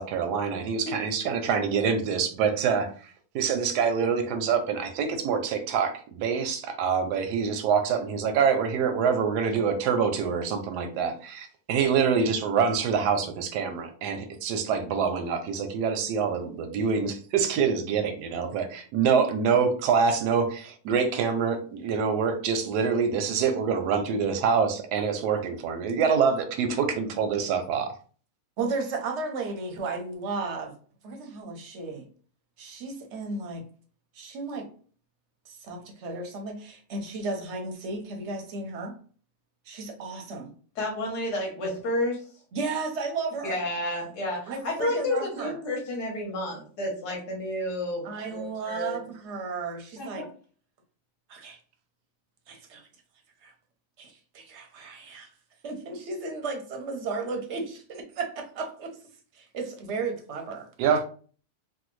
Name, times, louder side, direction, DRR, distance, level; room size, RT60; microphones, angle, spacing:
voice 1, 0.0-27.9 60.8-61.0, right 6 dB, 85° right, 6 dB, 1.1 m, -26 dB
voice 2, 0.8-1.3 28.6-30.7 31.0-32.1 32.6-33.6 34.1-34.7 35.5-39.0 39.7-40.5 42.5-43.6 44.5-45.6 48.0-50.3 51.3-51.6 52.5-52.9 53.4-53.5 54.0-55.3 55.6-58.9 59.3-60.7, right 3 dB, 60° right, 3 dB, 0.8 m, -34 dB
voice 3, 40.8-42.2 43.4-49.0 50.0-50.3, left 1 dB, 85° left, -2 dB, 1.5 m, -31 dB
3.4 x 2.1 x 3.1 m, 0.42 s
omnidirectional pair, 1.7 m